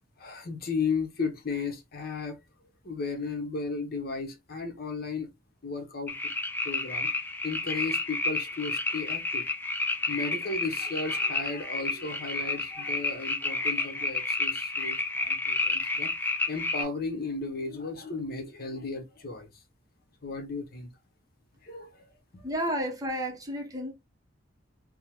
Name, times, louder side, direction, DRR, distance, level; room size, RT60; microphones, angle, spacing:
voice 1, 0.2-2.4 2.8-5.3 5.6-6.1 6.6-7.1 7.4-9.5 10.1-16.1 16.5-19.6 20.2-20.9 21.6-22.1 22.3-22.5, left 4 dB, 50° left, 0.8 m, -35 dB
sound 1, 6.1-16.8, left 3 dB, 10° left, 0.5 m, -30 dB
voice 2, 22.4-23.9, equal, 20° right, 0.7 m, -31 dB
3.6 x 2.0 x 2.8 m
head